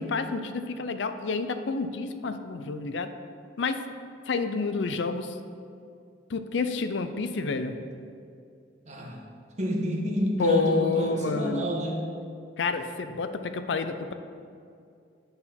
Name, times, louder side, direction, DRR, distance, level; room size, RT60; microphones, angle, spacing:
voice 1, 0.0-3.1 3.6-3.9 4.3-5.4 6.3-7.8 10.4-11.7 12.6-14.1, left 4 dB, 75° left, 9 dB, 0.5 m, -29 dB
voice 2, 8.9-9.2 9.6-12.0, equal, 40° right, -1 dB, 1.2 m, -28 dB
9.8 x 4.0 x 5.8 m, 2.4 s
head